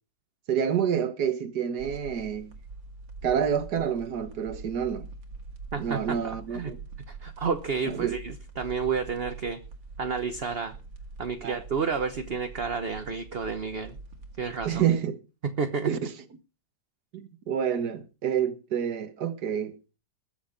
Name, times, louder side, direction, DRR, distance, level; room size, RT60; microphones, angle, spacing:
voice 1, 0.5-2.5 3.2-5.1 5.8-6.8 7.8-8.2 11.4-11.6 14.7-15.2 15.9-16.1 17.1-19.8, right 8 dB, 60° right, 1.8 m, -28 dB
sound 1, 1.8-14.9, right 4 dB, 85° right, 2.8 m, -44 dB
voice 2, 5.7-6.7 7.1-9.6 10.0-10.8 11.2-14.0 14.4-14.8 15.4-15.9, right 5 dB, 40° right, 1.1 m, -30 dB
21.0 x 7.2 x 5.3 m
omnidirectional pair, 2.0 m